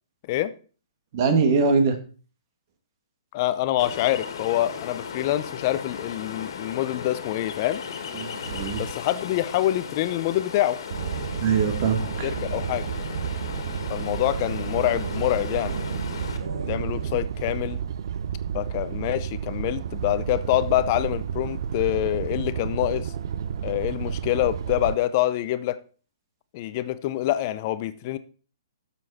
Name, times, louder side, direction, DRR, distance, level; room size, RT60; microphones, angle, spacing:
voice 1, 1.1-1.9 8.2-8.8 11.4-12.3, right 5 dB, 35° right, 2.0 m, -22 dB
voice 2, 3.3-7.8 8.8-10.8 12.2-12.9 13.9-15.7 16.7-17.8 18.5-23.1 23.6-25.8 26.5-28.2, left 14 dB, 35° left, 0.7 m, -26 dB
Ocean, 3.8-16.4, left 7 dB, 60° left, 2.0 m, -36 dB
sound 1, 8.4-8.9 10.9-25.0, right 8 dB, 55° right, 0.6 m, -31 dB
sound 2, 10.9-17.2, right 5 dB, 75° right, 2.6 m, -37 dB
12.0 x 7.2 x 4.3 m
hypercardioid pair, 160°, 3 cm